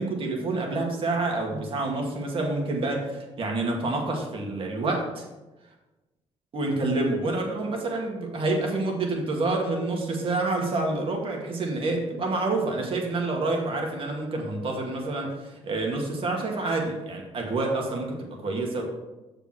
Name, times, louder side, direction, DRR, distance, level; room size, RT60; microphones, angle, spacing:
voice 1, 0.0-5.3 6.5-18.8, right 2 dB, 50° right, 0 dB, 2.3 m, -28 dB
7.1 x 5.2 x 6.2 m, 1.1 s
supercardioid pair, 75°, 11 cm